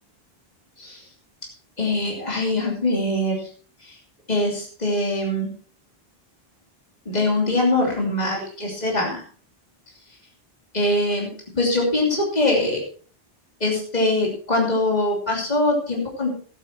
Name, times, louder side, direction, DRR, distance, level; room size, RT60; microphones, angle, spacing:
voice 1, 1.8-3.5 3.8-4.0 4.3-5.5 7.0-9.2 10.7-11.3 11.6-12.8 13.6-16.3, left 2 dB, 40° left, -1 dB, 3.1 m, -22 dB
14.0 x 8.9 x 4.3 m, 0.41 s
omnidirectional pair, 1.0 m